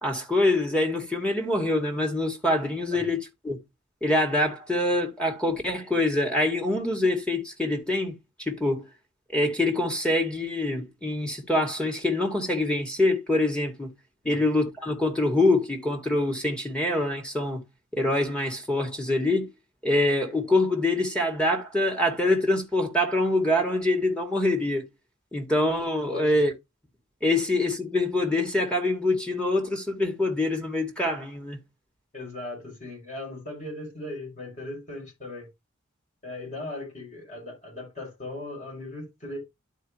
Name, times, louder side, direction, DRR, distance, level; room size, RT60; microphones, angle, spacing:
voice 1, 0.0-3.6 4.0-8.8 9.3-13.9 14.3-17.6 17.9-19.5 19.8-24.9 25.3-26.5 27.2-31.6, left 1 dB, 5° left, 2.1 m, -25 dB
voice 2, 26.1-26.4 32.1-35.5 36.2-39.4, left 2 dB, 35° left, 6.0 m, -38 dB
12.0 x 4.6 x 3.0 m
head